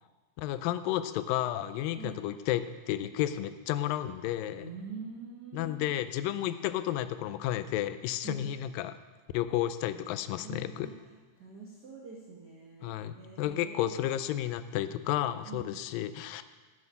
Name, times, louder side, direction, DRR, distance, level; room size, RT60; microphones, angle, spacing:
voice 1, 0.4-4.7 5.5-9.0 9.3-10.9 12.8-16.4, left 12 dB, 85° left, 12 dB, 2.3 m, -32 dB
voice 2, 4.5-5.8 8.2-8.4 10.4-10.9 11.4-14.0 15.4-15.8, right 5 dB, 55° right, -5 dB, 1.1 m, -45 dB
11.0 x 8.5 x 5.6 m, 1.3 s
omnidirectional pair, 3.9 m